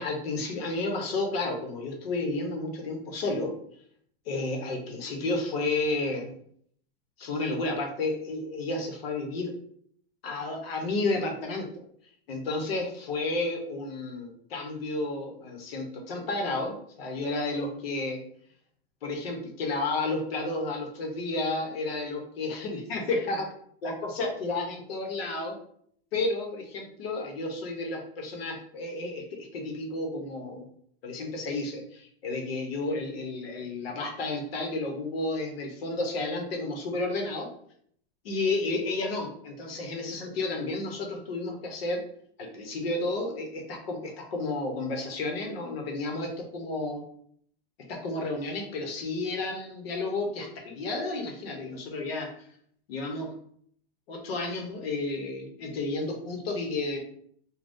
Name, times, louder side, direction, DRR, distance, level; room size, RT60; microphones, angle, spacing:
voice 1, 0.0-3.5 4.3-6.4 7.2-9.5 10.2-11.7 12.3-18.2 19.0-23.5 23.8-25.6 26.1-30.7 31.0-37.5 38.2-42.0 42.4-47.0 47.9-52.3 52.9-53.3 54.1-57.0, left 2 dB, 65° left, 2 dB, 0.9 m, -31 dB
3.4 x 2.2 x 2.6 m, 0.64 s
supercardioid pair, 180°, 32 cm